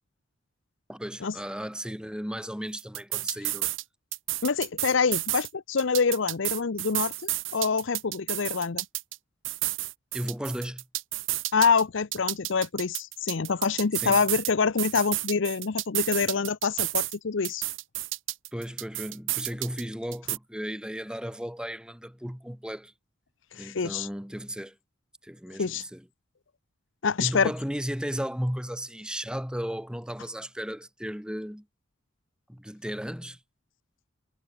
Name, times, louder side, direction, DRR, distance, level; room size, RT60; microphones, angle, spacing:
voice 1, 0.9-3.7 10.1-10.8 13.9-14.2 18.5-22.9 23.5-24.8 25.2-26.0 27.2-31.7 32.5-33.4, equal, 5° right, 1.8 m, -35 dB
sound 1, 2.8-3.8 4.1-5.5 5.8-9.2 9.4-11.8 12.1-14.5 14.8-17.2 17.4-19.8 20.1-20.4, right 17 dB, 75° right, 1.5 m, -31 dB
voice 2, 4.4-8.8 11.5-17.6 23.5-24.1 25.6-25.8 27.0-27.5, left 5 dB, 70° left, 0.7 m, -26 dB
head